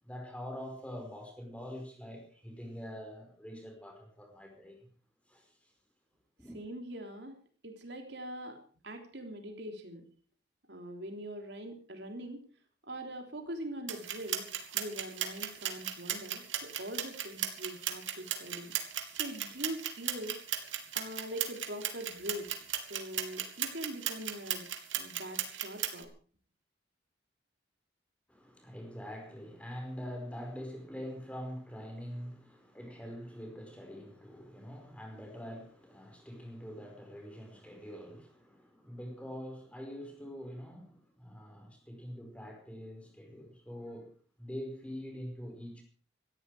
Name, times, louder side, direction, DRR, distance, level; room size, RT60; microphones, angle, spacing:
voice 1, 0.0-4.8 5.3-5.7 6.4-6.6 28.3-44.1 44.4-45.8, equal, 5° left, 5.0 m, -44 dB
voice 2, 6.5-7.3 7.6-10.1 10.7-12.4 12.8-14.5 14.7-18.7 19.1-20.4 20.9-22.5 22.8-24.7 25.0-26.1, equal, 65° right, 3.4 m, -42 dB
sound 1, 13.9-26.0, right 10 dB, 90° right, 2.7 m, -36 dB
18.0 x 13.5 x 4.9 m
head